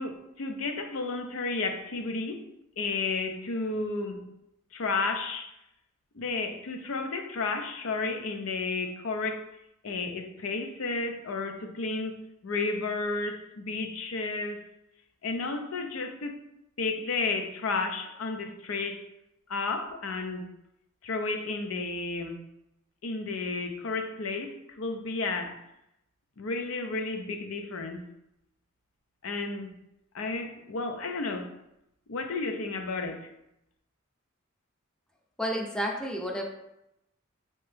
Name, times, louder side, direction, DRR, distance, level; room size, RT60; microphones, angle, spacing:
voice 1, 0.0-2.4 2.8-4.2 4.7-5.6 6.1-9.5 9.8-12.2 12.4-14.6 15.2-16.4 16.8-19.0 19.5-20.4 21.0-22.4 23.0-25.6 26.4-28.0 29.2-29.7 30.1-31.5 32.1-33.3, left 3 dB, 85° left, 6 dB, 0.5 m, -32 dB
voice 2, 35.4-36.4, equal, 5° left, 0 dB, 0.5 m, -30 dB
4.3 x 2.9 x 3.3 m, 0.85 s
head